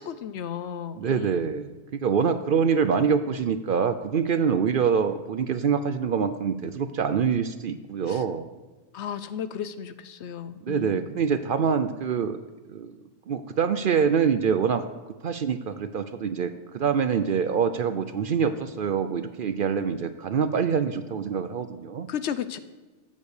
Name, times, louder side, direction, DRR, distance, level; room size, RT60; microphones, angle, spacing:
voice 1, 0.0-1.3 8.1-8.2 8.9-11.0 22.1-22.6, left 8 dB, 70° left, 13 dB, 0.9 m, -34 dB
voice 2, 0.9-8.4 10.6-12.4 12.7-13.0 13.3-14.9 15.2-22.1, right 6 dB, 60° right, 10 dB, 0.6 m, -25 dB
15.0 x 5.4 x 6.5 m, 1.2 s
omnidirectional pair, 1.2 m